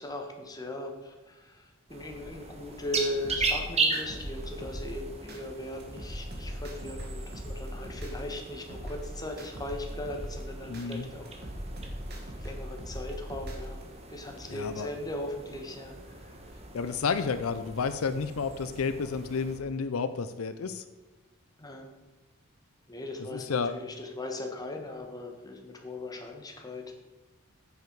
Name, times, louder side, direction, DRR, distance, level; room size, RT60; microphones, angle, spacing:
voice 1, 0.0-11.5 12.3-13.8 14.1-16.4 21.6-21.9 22.9-26.8, left 1 dB, 20° left, 3 dB, 1.4 m, -39 dB
sound 1, 1.9-19.6, right 3 dB, 30° right, 1.2 m, -38 dB
sound 2, 3.2-5.4 5.8-8.4 8.7-10.9 11.3-13.8, equal, 50° right, 1.9 m, -39 dB
voice 2, 10.7-11.1 14.5-14.9 16.7-20.8 23.3-23.7, left 5 dB, 75° left, 11 dB, 0.5 m, -31 dB
9.6 x 7.2 x 4.7 m, 1.2 s
head